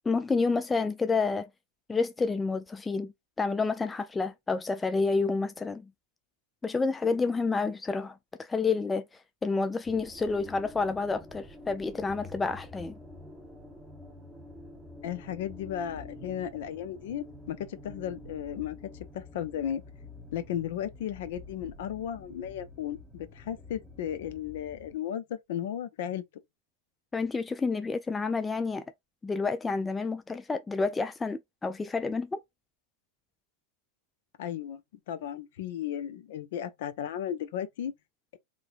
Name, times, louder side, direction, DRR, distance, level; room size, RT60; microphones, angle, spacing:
voice 1, 0.1-1.5 1.9-3.1 3.4-5.9 6.6-12.9 27.1-28.8 29.2-32.4, left 4 dB, 10° left, 0.3 m, -29 dB
sound 1, 9.8-25.0, left 2 dB, 10° right, 0.9 m, -48 dB
voice 2, 15.0-18.8 19.1-19.8 20.3-26.2 34.4-34.8 35.1-37.9, left 10 dB, 55° left, 0.7 m, -35 dB
3.7 x 3.1 x 2.5 m
figure-of-eight pair, 90°, 0 cm